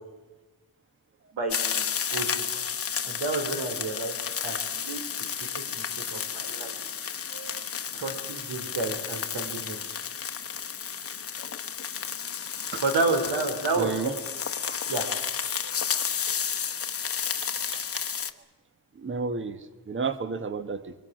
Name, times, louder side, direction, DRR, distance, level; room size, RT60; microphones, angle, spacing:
voice 1, 1.3-2.4 3.0-4.2 4.4-5.0 5.7-5.8 6.1-6.7 7.9-9.8 12.8-14.1 14.9-15.1, right 3 dB, 75° right, 5 dB, 4.9 m, -30 dB
sound 1, 1.5-18.3, left 7 dB, 30° left, 1.1 m, -32 dB
voice 2, 7.3-7.7 9.3-9.4 11.4-11.5 12.7-12.8 13.8-14.1 14.6-14.8 15.6-15.8 17.2-17.5 17.9-18.0 18.9-20.9, right 4 dB, 25° right, 12 dB, 1.2 m, -33 dB
27.0 x 23.0 x 6.3 m, 1.2 s
wide cardioid pair, 175°, 43 cm